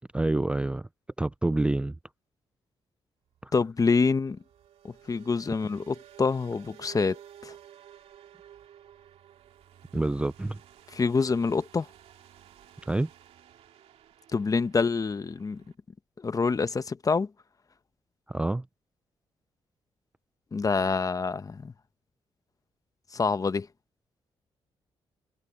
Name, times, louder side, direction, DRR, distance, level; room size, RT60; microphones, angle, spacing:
voice 1, 0.1-0.9 1.2-2.0 3.4-3.5 9.9-10.6 12.9-13.1 18.3-18.7, right 2 dB, 10° right, 0.3 m, -27 dB
sound 1, 3.3-15.7, right 10 dB, 80° right, 2.3 m, -53 dB
voice 2, 3.5-4.4 4.8-7.5 10.9-11.9 14.3-15.6 16.2-17.3 20.5-21.7 23.1-23.7, left 4 dB, 35° left, 1.0 m, -26 dB
cardioid pair, 70°, 10 cm